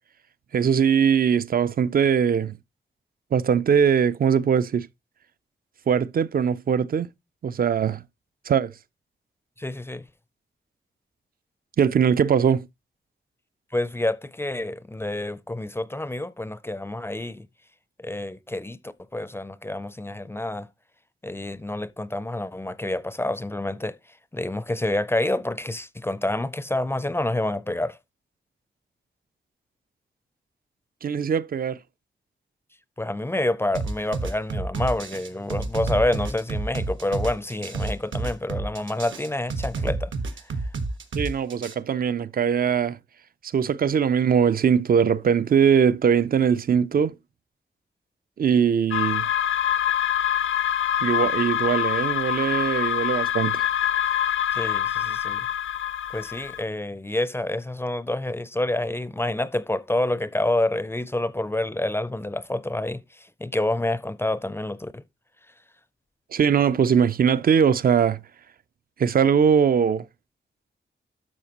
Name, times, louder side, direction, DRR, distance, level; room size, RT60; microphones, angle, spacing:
voice 1, 0.5-2.6 3.3-4.9 5.9-7.1 7.4-8.0 8.5-8.7 11.8-12.7 31.0-31.8 41.2-43.0 43.4-47.1 48.4-49.3 51.0-53.7 66.3-68.2 69.0-70.1, right 7 dB, 50° right, 0.4 m, -21 dB
voice 2, 9.6-10.0 13.7-17.5 18.0-18.8 19.1-20.7 21.2-24.0 24.3-28.0 33.0-40.1 54.5-55.5 56.1-65.0, left 1 dB, 10° left, 0.4 m, -28 dB
sound 1, 33.7-41.7, right 3 dB, 80° right, 1.4 m, -29 dB
sound 2, 48.9-56.6, left 10 dB, 85° left, 0.5 m, -25 dB
12.0 x 6.4 x 2.9 m
wide cardioid pair, 150°, 20 cm